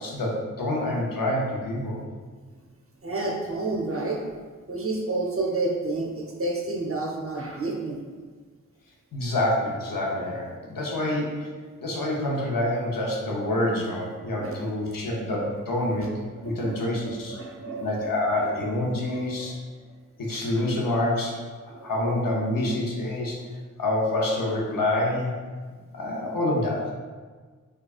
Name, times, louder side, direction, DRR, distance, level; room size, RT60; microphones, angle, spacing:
voice 1, 0.0-2.0 9.1-11.5 11.8-16.1 16.4-17.4 17.8-19.6 20.2-21.4 21.8-23.4 23.8-25.3 25.9-26.9, left 1 dB, 85° left, -2 dB, 0.7 m, -27 dB
voice 2, 3.0-4.2 4.7-8.0 11.0-11.1 14.4-14.6 15.1-15.2 16.0-16.1 16.4-18.1 18.4-18.5 19.4-19.5 20.5-20.7 21.7-21.9, right 2 dB, 45° right, -1 dB, 0.7 m, -30 dB
4.7 x 2.4 x 2.4 m, 1.5 s
cardioid pair, 45°, 33 cm